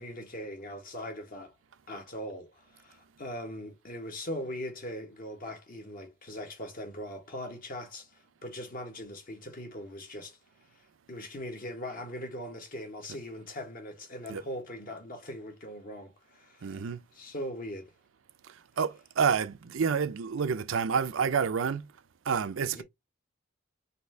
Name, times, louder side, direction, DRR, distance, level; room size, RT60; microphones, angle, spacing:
voice 1, 0.0-1.5 1.9-8.1 8.4-10.4 11.1-17.9 22.7-22.8, left 1 dB, 45° left, 1.4 m, -40 dB
voice 2, 16.6-17.0 18.8-21.9 22.3-22.8, right 6 dB, 70° right, 0.5 m, -28 dB
4.2 x 2.8 x 3.4 m
head